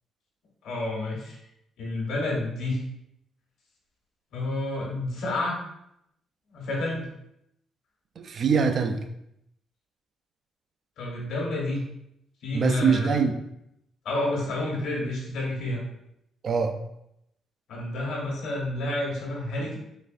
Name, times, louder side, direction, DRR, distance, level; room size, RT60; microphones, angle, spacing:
voice 1, 0.6-1.4 1.8-2.8 4.3-5.5 6.5-7.1 11.0-11.8 12.4-13.2 14.0-15.8 17.7-19.8, left 2 dB, 80° left, -2 dB, 1.1 m, -29 dB
voice 2, 8.2-9.0 12.5-13.4 16.4-16.8, right 5 dB, 55° right, 7 dB, 0.4 m, -23 dB
3.8 x 3.2 x 2.6 m, 0.79 s
cardioid pair, 90°, 0 cm